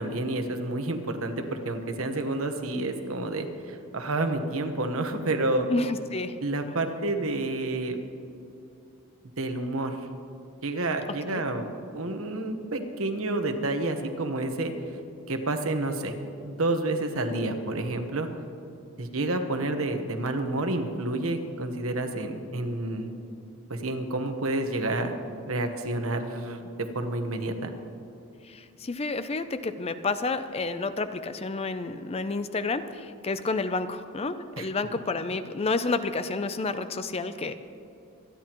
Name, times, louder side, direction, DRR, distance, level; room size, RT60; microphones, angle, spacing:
voice 1, 0.0-5.7 6.4-8.0 9.4-10.0 10.6-11.6 11.9-14.7 15.3-16.1 16.4-18.3 19.0-23.1 23.7-25.1 25.5-26.6 26.9-27.7 34.6-34.7, right 2 dB, 65° right, 6 dB, 1.2 m, -29 dB
voice 2, 5.7-6.4 11.3-11.4 28.4-37.5, left 3 dB, 25° left, 11 dB, 0.4 m, -30 dB
25.5 x 10.5 x 3.0 m, 2.7 s
head